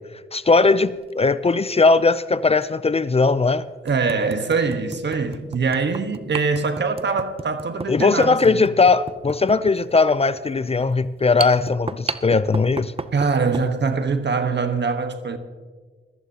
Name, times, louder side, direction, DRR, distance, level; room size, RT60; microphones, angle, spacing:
voice 1, 0.3-3.7 7.9-12.9, left 4 dB, 30° left, 0.5 m, -19 dB
sound 1, 0.9-1.1 2.6-2.7 3.2-3.3 3.9-13.7, right 4 dB, 25° right, 0.6 m, -34 dB
voice 2, 3.8-8.6 13.1-15.4, right 4 dB, 55° right, 1.3 m, -23 dB
21.0 x 14.5 x 2.9 m
cardioid pair, 70°, 21 cm